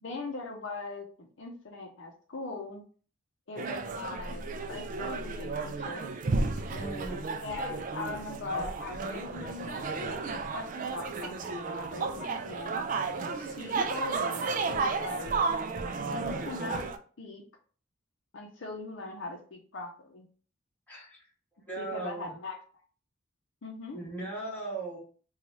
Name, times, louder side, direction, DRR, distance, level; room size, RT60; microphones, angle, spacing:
voice 1, 0.0-2.9 3.5-4.4 4.7-6.1 7.4-10.2 10.5-12.9 13.2-15.4 16.0-16.9 17.2-17.4 18.3-20.3 21.8-22.8 23.6-24.0, left 3 dB, 70° left, 2 dB, 0.6 m, -40 dB
sound 1, 3.6-17.0, right 4 dB, 40° right, 0.3 m, -33 dB
voice 2, 6.7-7.2 20.9-21.2 21.7-22.3 23.9-25.0, right 2 dB, 10° left, -5 dB, 1.4 m, -38 dB
3.1 x 2.3 x 4.0 m, 0.42 s
head